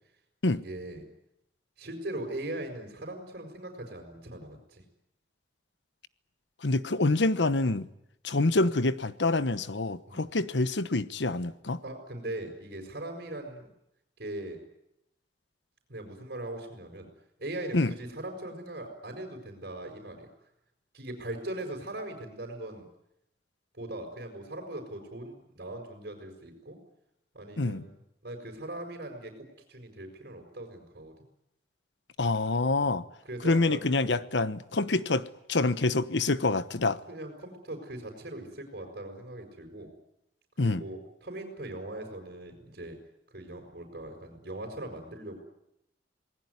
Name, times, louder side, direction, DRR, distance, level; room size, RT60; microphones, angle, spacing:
voice 1, 0.5-1.0 1.8-4.8 10.1-10.4 11.8-13.7 14.2-14.6 15.9-17.1 17.4-20.3 20.9-22.9 23.8-26.8 27.3-28.0 28.2-31.1 32.8-32.9 33.2-34.2 37.1-39.9 40.6-43.0 43.3-45.4, right 1 dB, 60° right, 5.8 m, -40 dB
voice 2, 6.6-7.9 8.2-11.8 17.7-17.9 27.6-27.9 32.2-33.0 33.4-37.0 40.6-40.8, left 2 dB, 85° left, 1.1 m, -26 dB
27.5 x 19.5 x 9.7 m
head